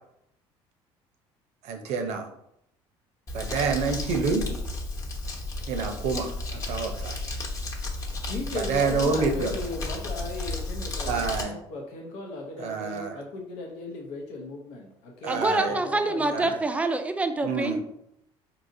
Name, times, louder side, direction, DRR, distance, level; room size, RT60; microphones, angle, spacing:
voice 1, 1.6-2.3 3.3-4.5 5.7-7.2 8.5-9.6 11.1-11.6 12.6-13.2 15.2-15.8 16.3-16.6 17.4-17.8, right 4 dB, 75° right, 5 dB, 0.6 m, -28 dB
Crumpling crinkling, 3.3-11.4, left 2 dB, 30° left, 0.9 m, -33 dB
voice 2, 8.3-16.6, left 2 dB, 85° left, 0 dB, 0.7 m, -37 dB
voice 3, 15.3-17.8, right 2 dB, 10° right, 8 dB, 0.4 m, -26 dB
4.0 x 2.8 x 2.6 m, 0.77 s
cardioid pair, 100°, 11 cm